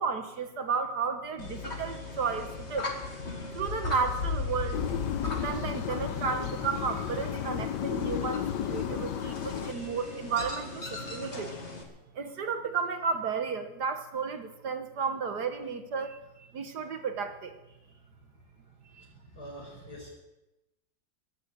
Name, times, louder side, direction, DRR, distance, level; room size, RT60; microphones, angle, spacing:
voice 1, 0.0-2.9 3.5-4.8 5.3-11.6 12.1-17.6 18.9-19.0, right 5 dB, 60° right, 8 dB, 1.5 m, -33 dB
sound 1, 1.4-11.8, left 4 dB, 35° left, 2.4 m, -37 dB
sound 2, 4.7-9.7, left 10 dB, 70° left, 1.3 m, -34 dB
voice 2, 19.0-20.1, equal, 50° left, -1 dB, 5.7 m, -46 dB
22.0 x 7.6 x 7.9 m, 0.97 s
omnidirectional pair, 2.1 m